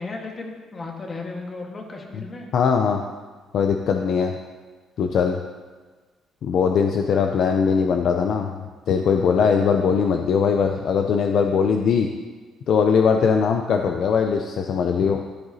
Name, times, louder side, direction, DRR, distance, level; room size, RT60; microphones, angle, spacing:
voice 1, 0.0-2.5, left 3 dB, 25° left, 1 dB, 1.4 m, -35 dB
voice 2, 2.5-3.0 3.5-4.3 5.0-5.4 6.4-8.5 8.9-12.1 12.7-15.2, left 6 dB, 55° left, 4 dB, 0.5 m, -20 dB
13.5 x 7.9 x 2.8 m, 1.4 s
cardioid pair, 150°, 0 cm